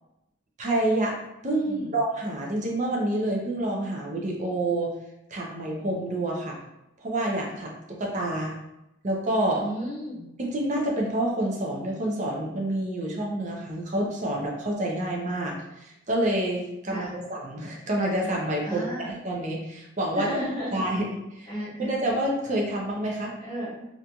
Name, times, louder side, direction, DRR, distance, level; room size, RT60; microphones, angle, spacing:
voice 1, 0.6-1.2 1.4-4.9 5.3-6.6 7.0-8.5 9.0-9.6 10.4-20.4 20.7-21.1 21.3-21.5 21.8-23.3, right 1 dB, 40° right, -1 dB, 0.5 m, -28 dB
voice 2, 1.7-2.0 9.6-10.3 16.9-17.2 18.6-19.1 20.1-20.8 21.5-21.9 23.4-23.9, equal, 20° left, -9 dB, 1.3 m, -33 dB
2.9 x 2.6 x 2.2 m, 0.89 s
head